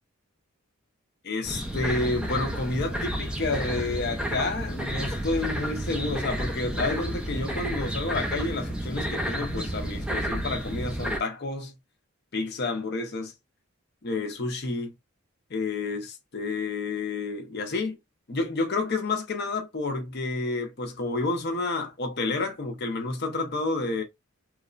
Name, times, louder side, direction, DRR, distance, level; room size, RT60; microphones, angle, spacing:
voice 1, 1.3-11.8 12.3-13.3 14.0-14.9 15.5-18.0 18.3-24.0, left 3 dB, 45° left, 0.6 m, -30 dB
sound 1, 1.4-11.2, equal, 5° right, 0.4 m, -31 dB
3.1 x 2.0 x 2.3 m
head